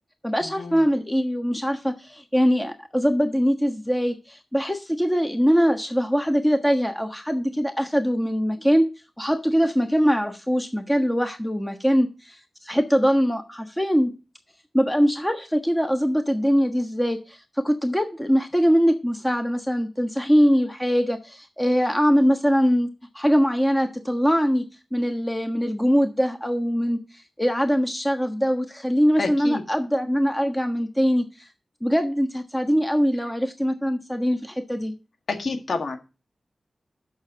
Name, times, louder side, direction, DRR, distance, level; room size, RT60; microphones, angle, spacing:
voice 1, 0.2-8.9 9.2-12.4 12.6-14.1 14.7-22.9 23.1-24.6 24.9-27.0 27.4-31.3 31.8-34.9, equal, 15° left, 6 dB, 1.3 m, -22 dB
voice 2, 29.2-29.6 35.3-36.0, left 3 dB, 75° left, 6 dB, 1.8 m, -28 dB
6.4 x 6.4 x 7.4 m, 0.30 s
cardioid pair, 40°, 0 cm